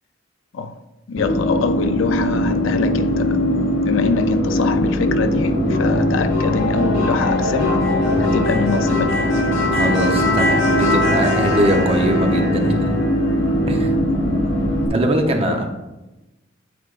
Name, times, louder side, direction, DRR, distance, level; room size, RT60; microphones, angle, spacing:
voice 1, 1.1-3.4 3.8-7.9 8.2-9.3 15.4-15.7, left 4 dB, 75° left, 0.4 m, -24 dB
sound 1, 1.2-14.9, left 1 dB, 90° left, 1.5 m, -19 dB
voice 2, 9.7-13.0 13.7-13.9 14.9-15.7, equal, 30° right, 0.7 m, -21 dB
8.4 x 4.7 x 2.5 m
head